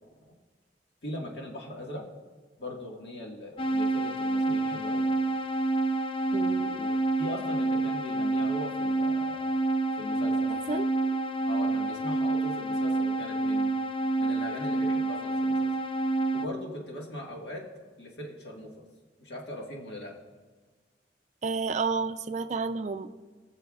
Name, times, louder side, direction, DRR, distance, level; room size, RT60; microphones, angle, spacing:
voice 1, 1.0-2.0 2.6-5.1 6.7-9.5 10.0-10.5 11.5-13.7 14.2-15.7 16.1-17.6 18.0-18.9 19.2-20.1, left 1 dB, 65° left, -1 dB, 1.7 m, -40 dB
sound 1, 3.6-16.5, right 2 dB, 30° left, 0.3 m, -28 dB
voice 2, 6.3-6.8 10.5-10.9 21.4-23.1, right 4 dB, 40° right, 10 dB, 0.4 m, -31 dB
20.5 x 6.8 x 2.4 m, 1.4 s
head